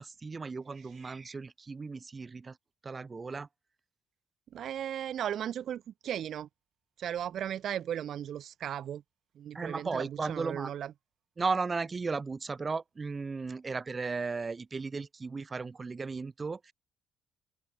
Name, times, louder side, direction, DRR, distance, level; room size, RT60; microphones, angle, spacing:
voice 1, 0.0-2.6 2.8-3.5 9.5-10.7 11.4-16.7, right 4 dB, 30° right, 0.9 m, -35 dB
voice 2, 4.5-6.5 7.0-9.0 9.4-10.9, right 10 dB, 70° right, 0.9 m, -36 dB
open air
cardioid pair, 90°, 0 cm